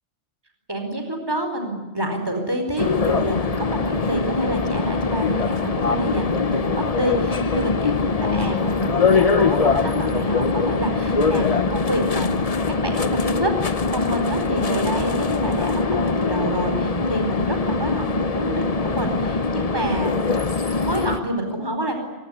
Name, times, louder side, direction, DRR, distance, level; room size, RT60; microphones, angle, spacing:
voice 1, 0.7-12.4 12.7-20.1 20.7-21.9, equal, 20° right, 5 dB, 4.6 m, -27 dB
sound 1, 2.8-21.2, left 4 dB, 35° left, 0.9 m, -22 dB
24.0 x 22.0 x 9.8 m, 1.2 s
omnidirectional pair, 1.2 m